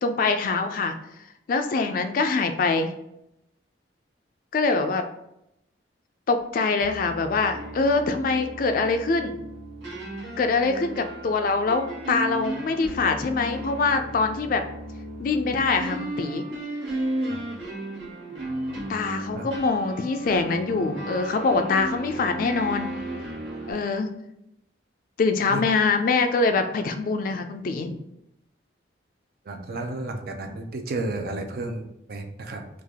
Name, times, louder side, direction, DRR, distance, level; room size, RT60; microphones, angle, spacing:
voice 1, 0.0-0.9 1.5-2.9 4.5-5.0 6.3-9.3 10.4-14.6 15.2-16.4 18.9-22.9 23.7-24.1 25.2-28.0, left 4 dB, 45° left, 7 dB, 0.3 m, -24 dB
sound 1, 6.8-23.7, right 1 dB, 80° right, 1.2 m, -34 dB
voice 2, 29.4-32.7, right 2 dB, 55° right, 4 dB, 0.4 m, -32 dB
3.3 x 2.4 x 3.5 m, 0.82 s
head